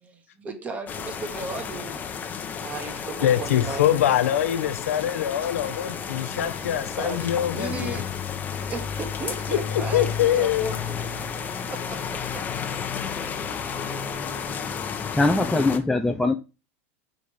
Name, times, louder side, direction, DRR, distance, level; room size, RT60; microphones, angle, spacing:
voice 1, 0.0-2.1 2.6-3.8 7.0-8.1 8.7-11.0 11.7-12.4, right 4 dB, 20° right, 1.1 m, -36 dB
sound 1, 0.9-15.8, left 6 dB, 25° left, 0.7 m, -32 dB
voice 2, 3.2-8.0 9.9-10.7, left 11 dB, 90° left, 0.8 m, -24 dB
voice 3, 15.1-16.3, left 2 dB, 5° left, 0.3 m, -21 dB
5.1 x 4.2 x 4.7 m
supercardioid pair, 140°, 7 cm